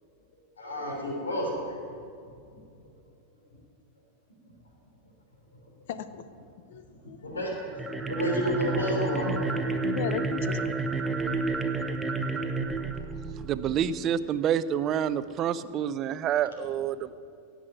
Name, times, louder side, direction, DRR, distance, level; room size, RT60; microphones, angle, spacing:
voice 1, 0.6-1.8 6.9-7.6 8.0-9.3, left 1 dB, 75° left, -1 dB, 3.5 m, -30 dB
voice 2, 5.9-6.2 6.7-7.3 9.1-9.4 9.8-10.8, left 8 dB, 55° left, 12 dB, 0.7 m, -36 dB
sound 1, 7.7-13.9, right 3 dB, 5° right, 0.9 m, -30 dB
voice 3, 13.4-17.1, right 9 dB, 30° right, 15 dB, 0.5 m, -28 dB
17.0 x 6.2 x 9.1 m, 2.4 s
figure-of-eight pair, 90°, 0 cm